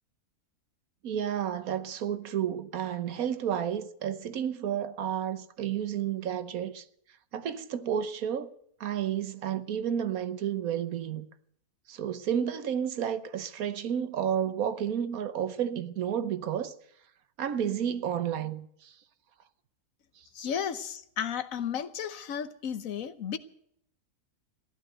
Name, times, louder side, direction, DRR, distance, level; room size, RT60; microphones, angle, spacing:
voice 1, 1.0-6.8 7.3-8.5 8.8-11.3 11.9-16.7 17.4-18.9 20.2-20.3, right 9 dB, 70° right, 1.3 m, -31 dB
voice 2, 20.3-23.4, left 8 dB, 65° left, 1.3 m, -33 dB
15.0 x 11.5 x 7.8 m
omnidirectional pair, 1.6 m